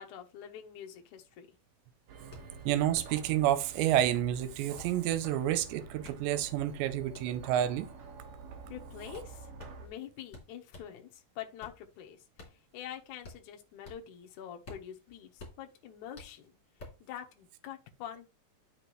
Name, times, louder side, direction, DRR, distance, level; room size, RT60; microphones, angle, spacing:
voice 1, 0.0-1.6 8.7-9.5 9.8-16.6 17.1-18.3, left 10 dB, 85° left, 1.7 m, -46 dB
sound 1, 1.4-1.5 1.7-11.0 11.4-14.2 14.5-17.1, left 2 dB, 25° left, 3.1 m, -52 dB
sound 2, 2.1-9.9, right 4 dB, 65° right, 1.6 m, -48 dB
voice 2, 2.7-7.9, right 12 dB, 85° right, 2.9 m, -29 dB
10.0 x 5.8 x 3.1 m
omnidirectional pair, 5.0 m